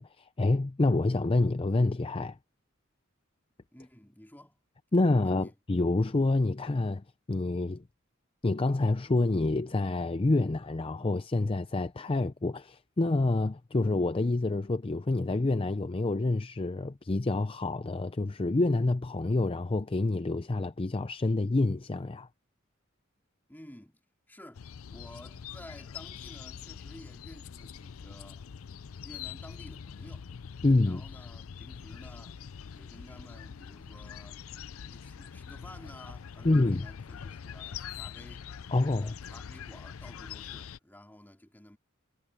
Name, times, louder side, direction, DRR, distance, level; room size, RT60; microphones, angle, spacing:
voice 1, 0.0-2.4 4.9-7.8 8.4-22.3 30.6-31.0 36.4-36.9 38.7-39.1, left 2 dB, 25° left, 0.5 m, -27 dB
voice 2, 3.7-4.6 4.9-5.6 23.5-24.0 24.3-28.5 29.0-30.3 30.8-32.3 32.7-34.4 34.8-38.5 39.0-41.8, left 1 dB, 10° left, 2.9 m, -52 dB
sound 1, 24.6-40.8, left 7 dB, 80° left, 0.5 m, -44 dB
head